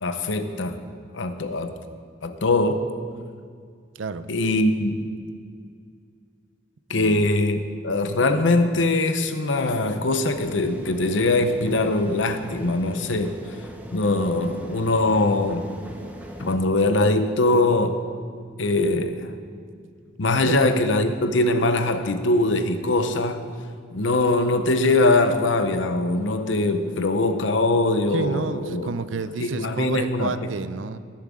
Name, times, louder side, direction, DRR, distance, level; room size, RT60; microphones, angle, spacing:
voice 1, 0.0-0.8 1.1-1.7 2.2-2.9 4.3-5.1 6.9-13.4 13.9-15.7 16.4-18.0 18.6-19.3 20.2-23.5 23.9-28.9 29.4-30.3, left 2 dB, 80° left, 0.8 m, -22 dB
voice 2, 3.9-4.3 6.9-7.3 20.4-20.6 28.1-31.0, right 4 dB, 85° right, 0.5 m, -30 dB
sound 1, 10.3-16.6, equal, 10° right, 0.8 m, -40 dB
19.0 x 7.3 x 3.7 m
head